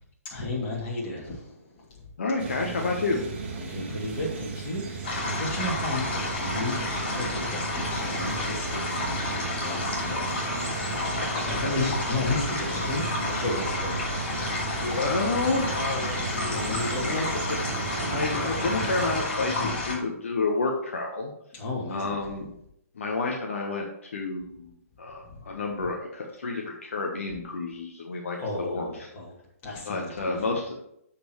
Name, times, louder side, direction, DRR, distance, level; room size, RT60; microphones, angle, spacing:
voice 1, 0.3-2.1 3.5-14.0 14.6-15.0 16.3-17.4 19.6-19.8 21.5-22.2 25.2-25.4 28.4-29.3 29.6-30.6, left 2 dB, 25° left, -4 dB, 2.6 m, -34 dB
voice 2, 2.2-3.2 14.8-17.6 18.1-21.3 21.9-22.5 23.0-24.7 25.0-29.1 29.9-30.7, left 3 dB, 55° left, 0 dB, 1.2 m, -30 dB
sound 1, 2.4-19.2, right 4 dB, 45° right, 1.3 m, -35 dB
sound 2, 5.0-19.9, left 2 dB, 40° left, 3.3 m, -31 dB
13.0 x 4.4 x 3.1 m, 0.75 s
figure-of-eight pair, 125°, 8 cm